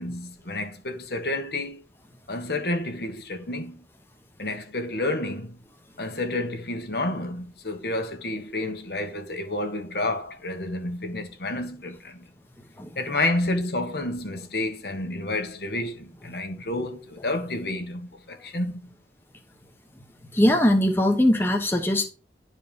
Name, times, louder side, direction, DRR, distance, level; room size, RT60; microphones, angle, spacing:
voice 1, 0.0-1.8 2.3-3.8 4.4-5.6 6.0-12.2 13.0-18.8, left 2 dB, 60° left, 1.4 m, -30 dB
voice 2, 20.3-22.1, left 1 dB, 15° left, 1.0 m, -20 dB
11.0 x 4.5 x 5.2 m
head